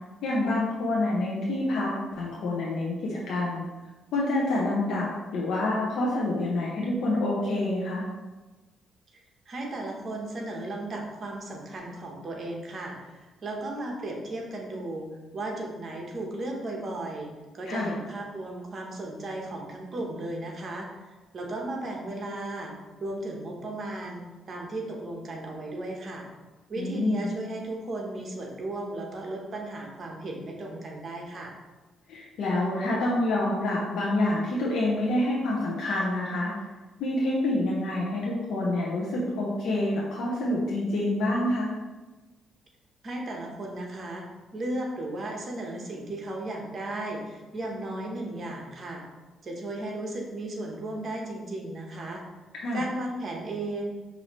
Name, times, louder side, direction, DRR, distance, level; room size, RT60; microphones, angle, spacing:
voice 1, 0.2-3.6 4.1-8.0 17.7-17.9 26.8-27.3 32.1-36.5 37.0-41.7 52.5-52.8, left 1 dB, 75° left, -5 dB, 0.8 m, -27 dB
voice 2, 9.5-15.1 15.3-17.3 17.5-20.9 21.3-22.7 23.0-26.2 26.7-31.5 43.0-44.2 44.5-49.0 49.4-52.2 52.7-53.9, right 2 dB, 45° right, 0 dB, 1.0 m, -35 dB
5.5 x 2.7 x 3.0 m, 1.2 s
cardioid pair, 90°, 0 cm